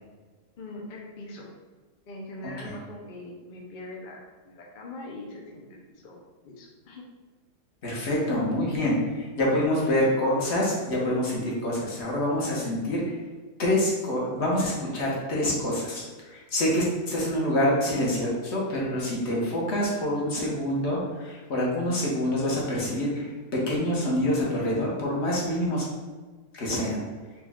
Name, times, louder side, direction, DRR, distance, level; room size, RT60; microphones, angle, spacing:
voice 1, 0.6-1.5 2.1-7.0, left 2 dB, 65° left, -2 dB, 0.4 m, -42 dB
voice 2, 2.4-2.7 7.8-13.2 13.6-25.8 26.5-27.0, left 1 dB, 45° left, -4 dB, 1.2 m, -26 dB
5.0 x 2.3 x 3.5 m, 1.3 s
omnidirectional pair, 1.7 m